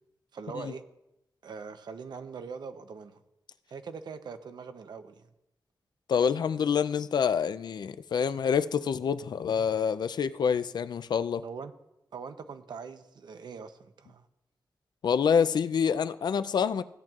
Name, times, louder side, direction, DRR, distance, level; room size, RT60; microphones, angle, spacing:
voice 1, 0.3-0.8 1.4-3.2 3.7-5.3 11.4-11.7 12.1-14.3, right 5 dB, 85° right, 0.7 m, -42 dB
voice 2, 6.1-11.4 15.0-16.8, left 7 dB, 75° left, 0.4 m, -27 dB
16.0 x 8.9 x 2.4 m
wide cardioid pair, 135°, 7 cm